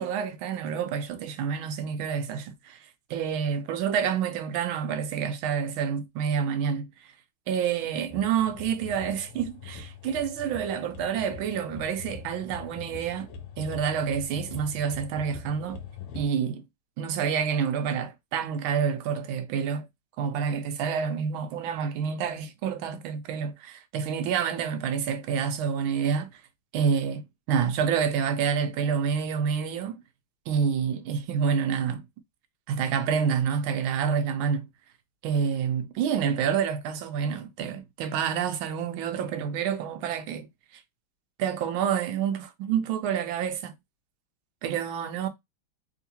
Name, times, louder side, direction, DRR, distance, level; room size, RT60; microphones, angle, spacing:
voice 1, 0.0-2.8 3.1-6.9 7.5-13.3 13.6-15.8 16.1-16.6 17.0-19.9 20.2-26.3 26.7-30.0 30.5-32.0 32.7-34.7 35.2-40.5 41.4-43.7 44.6-45.3, right 7 dB, 80° right, 1.4 m, -28 dB
sound 1, 8.1-16.2, left 6 dB, 75° left, 1.5 m, -43 dB
3.6 x 2.9 x 2.8 m
omnidirectional pair, 2.2 m